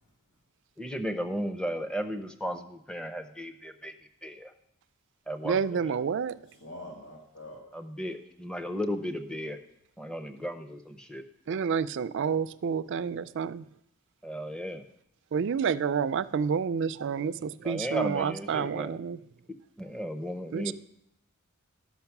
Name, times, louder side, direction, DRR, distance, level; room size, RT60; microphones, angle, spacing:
voice 1, 0.8-3.9 4.2-4.5 5.3-5.6 7.7-9.6 10.0-11.2 14.2-14.8 17.6-19.0 19.8-20.7, equal, 5° left, 0.6 m, -35 dB
voice 2, 5.4-6.4 11.5-13.7 15.3-19.2 20.5-20.7, right 6 dB, 55° right, 0.3 m, -29 dB
voice 3, 6.6-7.6, left 1 dB, 90° left, 1.8 m, -44 dB
12.0 x 6.0 x 5.9 m
head